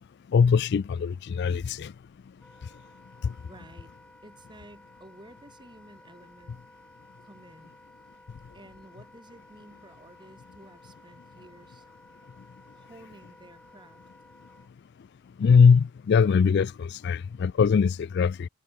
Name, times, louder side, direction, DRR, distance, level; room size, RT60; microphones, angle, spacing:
voice 1, 0.3-1.9 15.4-18.5, left 6 dB, 50° left, 0.3 m, -21 dB
Wind instrument woodwind instrument, 2.4-14.7, left 1 dB, 5° left, 4.8 m, -55 dB
voice 2, 3.4-3.9 4.2-6.6 7.2-7.8 8.5-11.9 12.7-14.0, right 1 dB, 20° right, 2.5 m, -52 dB
head